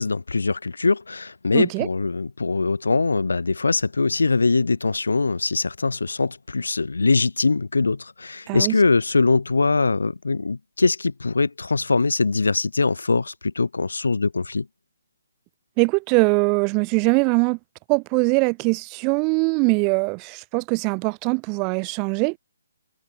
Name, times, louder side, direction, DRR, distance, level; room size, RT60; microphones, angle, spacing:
voice 1, 0.0-14.7, left 3 dB, 85° left, 1.4 m, -22 dB
voice 2, 1.5-1.9 8.5-8.7 15.8-17.6 17.9-22.4, right 35 dB, 20° right, 2.6 m, -22 dB
hypercardioid pair, 155°, 0 cm